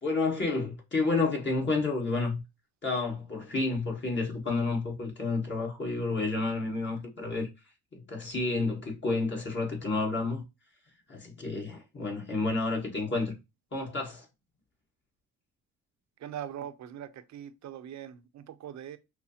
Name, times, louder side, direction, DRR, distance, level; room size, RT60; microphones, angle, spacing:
voice 1, 0.0-2.4 2.8-7.5 7.9-10.4 11.1-13.4 13.7-14.2, left 3 dB, 40° left, 1.7 m, -30 dB
voice 2, 16.2-19.0, right 10 dB, 65° right, 0.7 m, -41 dB
5.7 x 2.0 x 2.8 m
cardioid pair, 90°, 30 cm